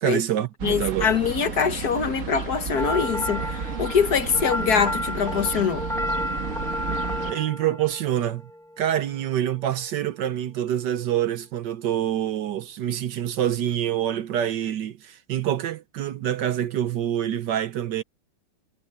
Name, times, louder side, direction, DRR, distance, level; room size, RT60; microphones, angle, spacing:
voice 1, 0.0-1.1 7.3-8.4 8.8-18.0, right 11 dB, 65° right, 1.3 m, -26 dB
voice 2, 0.6-5.8, left 6 dB, 55° left, 1.6 m, -23 dB
sound 1, 0.6-7.3, right 6 dB, 45° right, 1.4 m, -32 dB
sound 2, 2.8-9.0, left 1 dB, ahead, 0.8 m, -32 dB
omnidirectional pair, 2.2 m